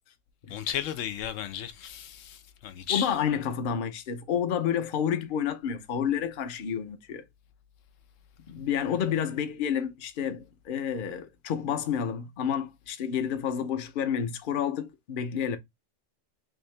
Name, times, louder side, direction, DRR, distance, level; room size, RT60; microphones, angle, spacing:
voice 1, 0.5-3.1, left 10 dB, 90° left, 1.0 m, -34 dB
voice 2, 2.9-7.3 8.5-15.6, left 8 dB, 50° left, 0.7 m, -30 dB
3.4 x 2.7 x 3.2 m
omnidirectional pair, 1.3 m